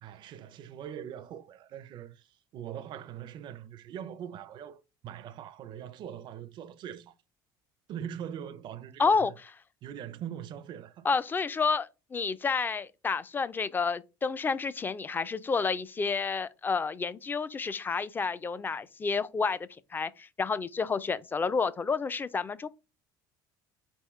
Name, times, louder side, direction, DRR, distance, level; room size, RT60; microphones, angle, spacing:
voice 1, 0.0-7.1 7.9-9.3 9.8-11.1, right 9 dB, 50° right, 0.4 m, -42 dB
voice 2, 9.0-9.3 11.0-19.6 19.9-22.7, left 5 dB, 20° left, 0.4 m, -30 dB
4.2 x 3.5 x 3.1 m
supercardioid pair, 105°, 10 cm